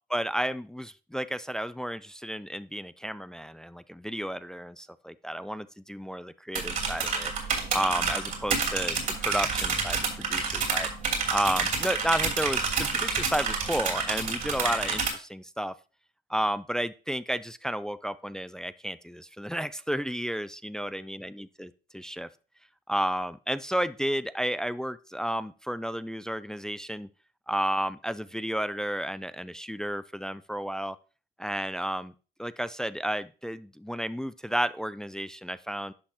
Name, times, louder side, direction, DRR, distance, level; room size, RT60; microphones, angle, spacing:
voice 1, 0.1-7.3 7.7-10.9 11.3-15.7 16.3-22.3 22.9-27.1 27.5-31.0 31.4-32.1 32.4-35.9, equal, 5° left, 15 dB, 0.3 m, -32 dB
sound 1, 6.6-15.1, right 5 dB, 55° right, 2.9 m, -29 dB
10.5 x 5.7 x 2.9 m, 0.34 s
cardioid pair, 110°, 17 cm